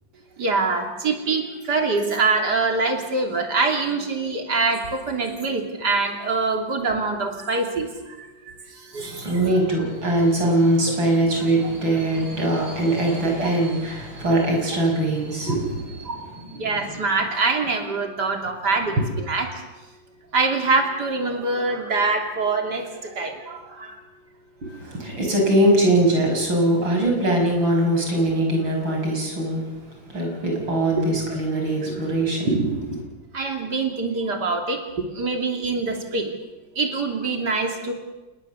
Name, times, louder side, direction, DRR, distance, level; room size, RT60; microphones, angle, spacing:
voice 1, 0.4-9.4 13.4-13.5 15.5-15.6 16.0-16.3 16.6-19.6 20.3-24.0 31.0-31.1 33.3-36.3 36.8-37.9, right 3 dB, 60° right, 3 dB, 3.4 m, -24 dB
voice 2, 9.0-17.0 19.0-19.1 24.6-29.7 30.1-33.1, right 1 dB, 90° right, 1 dB, 6.3 m, -22 dB
27.5 x 20.5 x 7.0 m, 1.1 s
omnidirectional pair, 2.1 m